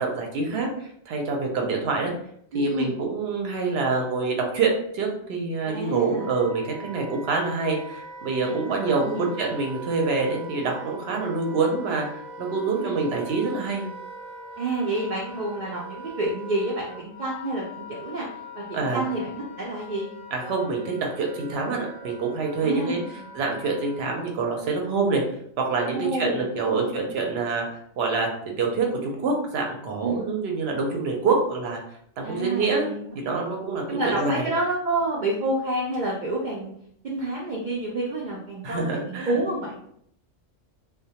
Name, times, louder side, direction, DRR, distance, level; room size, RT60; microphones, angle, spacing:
voice 1, 0.0-2.1 2.5-12.1 12.4-13.9 18.7-19.1 20.3-23.0 23.3-25.2 25.6-27.7 28.0-28.3 28.6-31.8 32.2-34.5 38.6-39.4, right 4 dB, 65° right, 1 dB, 0.7 m, -26 dB
voice 2, 2.5-2.9 5.6-6.3 8.4-9.2 12.6-13.0 14.6-18.3 18.5-20.1 22.6-23.3 25.9-27.1 30.0-30.3 32.2-33.1 33.9-36.7 37.0-39.8, right 2 dB, 85° right, -3 dB, 0.4 m, -29 dB
Wind instrument woodwind instrument, 5.6-24.4, right 1 dB, 15° right, 0.8 m, -42 dB
2.2 x 2.1 x 2.7 m, 0.68 s
omnidirectional pair, 1.3 m